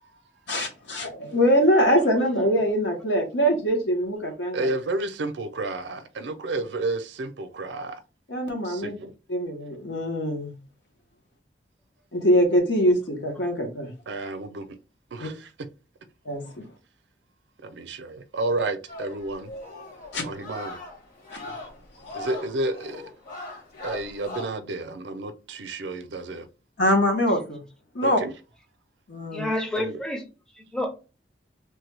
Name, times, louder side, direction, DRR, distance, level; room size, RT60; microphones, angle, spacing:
voice 1, 0.5-4.7 8.3-8.9 9.3-10.5 12.1-13.9 15.2-15.3 16.2-16.7 20.1-20.3 21.3-21.5 26.8-27.6 27.9-28.2 29.1-29.5, equal, 80° left, 1.0 m, -23 dB
voice 2, 4.5-7.9 8.8-8.9 14.1-14.6 15.2-15.3 17.8-19.5 20.2-20.8 22.1-23.0 23.8-26.4 28.0-28.3 29.8-29.9, right 2 dB, 75° right, 0.5 m, -30 dB
sound 1, 18.9-24.4, left 2 dB, 50° left, 1.1 m, -40 dB
voice 3, 29.3-30.3 30.5-30.9, left 1 dB, 5° left, 0.5 m, -29 dB
3.2 x 2.2 x 3.2 m
head